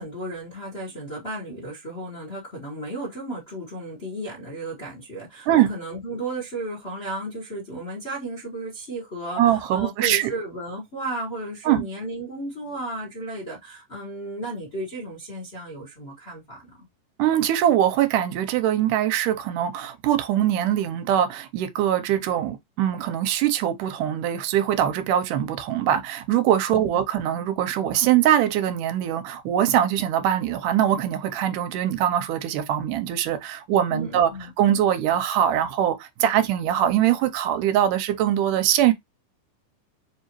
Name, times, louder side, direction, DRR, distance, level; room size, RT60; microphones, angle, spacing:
voice 1, 0.0-16.9 26.7-27.0 33.9-34.5, right 1 dB, 45° left, 0.8 m, -34 dB
voice 2, 9.4-10.3 11.7-11.9 17.2-34.3 34.6-38.9, right 11 dB, 90° right, 2.2 m, -22 dB
4.8 x 2.8 x 3.0 m
omnidirectional pair, 3.6 m